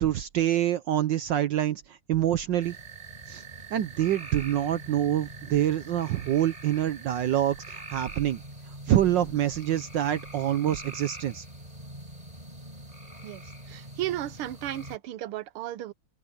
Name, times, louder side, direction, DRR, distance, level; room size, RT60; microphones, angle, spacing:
voice 1, 0.0-2.8 3.3-3.4 3.7-8.4 8.9-11.4, right 12 dB, 65° right, 1.3 m, -26 dB
sound 1, 2.6-15.0, right 2 dB, 15° right, 5.7 m, -43 dB
voice 2, 13.7-15.9, right 13 dB, 90° right, 1.7 m, -34 dB
open air
omnidirectional pair, 2.3 m